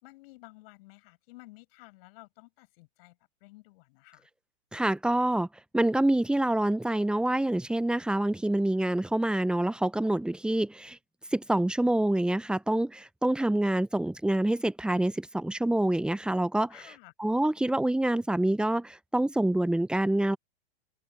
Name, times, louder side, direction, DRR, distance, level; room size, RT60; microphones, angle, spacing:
voice 1, 0.0-3.2 3.4-4.3 16.7-17.1, left 22 dB, 60° left, 6.7 m, -53 dB
voice 2, 4.7-5.5 5.7-11.0 11.3-16.7 17.2-20.4, right 1 dB, 5° right, 0.6 m, -26 dB
open air
hypercardioid pair, 110°, 34 cm